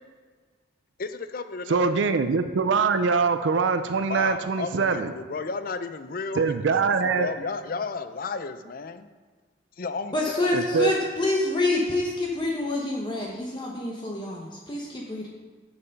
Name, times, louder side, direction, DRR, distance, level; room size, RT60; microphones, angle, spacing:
voice 1, 1.0-1.9 4.1-9.1 9.8-11.0, left 4 dB, 50° left, 11 dB, 0.5 m, -33 dB
voice 2, 1.7-5.1 6.4-7.3 10.5-10.9, right 5 dB, 70° right, 9 dB, 0.4 m, -23 dB
voice 3, 10.1-15.3, left 2 dB, 25° left, -2 dB, 0.9 m, -27 dB
6.9 x 6.9 x 5.2 m, 1.5 s
head